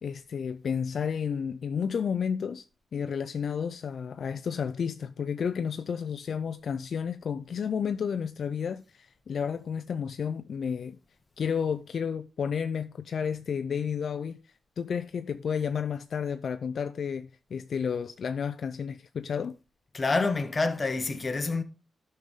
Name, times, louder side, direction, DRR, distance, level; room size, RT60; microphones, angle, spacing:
voice 1, 0.0-2.7 2.9-11.0 11.4-14.4 14.8-19.6, left 7 dB, 60° left, 0.4 m, -31 dB
voice 2, 19.9-21.6, left 3 dB, 30° left, 1.0 m, -27 dB
12.5 x 5.6 x 3.6 m
wide cardioid pair, 120°, 0 cm